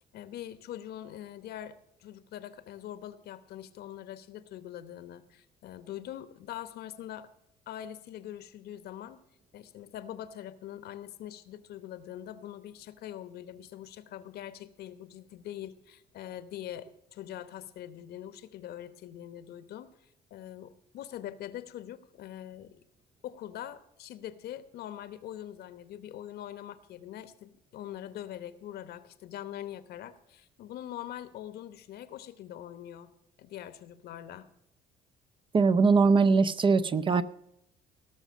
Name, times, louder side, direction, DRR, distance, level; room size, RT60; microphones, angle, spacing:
voice 1, 0.1-7.3 7.7-9.2 9.5-22.8 23.2-33.1 33.4-34.5, left 11 dB, 70° left, 13 dB, 1.0 m, -43 dB
voice 2, 35.5-37.2, right 4 dB, 30° right, 13 dB, 0.6 m, -22 dB
18.0 x 6.3 x 6.2 m, 0.79 s
cardioid pair, 110°, 17 cm